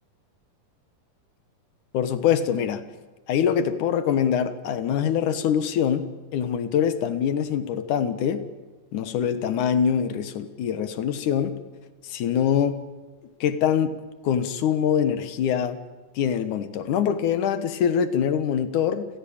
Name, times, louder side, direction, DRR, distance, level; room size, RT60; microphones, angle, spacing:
voice 1, 1.9-2.8 3.3-8.4 8.9-11.5 12.1-12.8 13.4-14.0 14.2-15.8 16.2-19.1, left 8 dB, 65° left, 11 dB, 2.6 m, -24 dB
29.0 x 16.0 x 8.7 m, 1.3 s
omnidirectional pair, 4.0 m